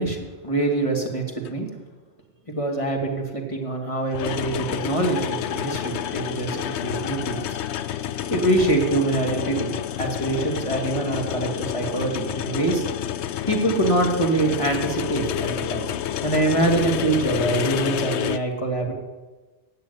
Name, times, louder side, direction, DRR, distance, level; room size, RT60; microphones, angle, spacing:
voice 1, 0.0-1.7 2.5-7.6 8.3-12.8 13.5-15.9 16.2-18.9, right 2 dB, 25° left, 1 dB, 2.4 m, -24 dB
sound 1, 1.4-1.5 4.1-18.4, left 10 dB, 70° left, 0.9 m, -29 dB
16.0 x 6.8 x 9.6 m, 1.3 s
omnidirectional pair, 1.2 m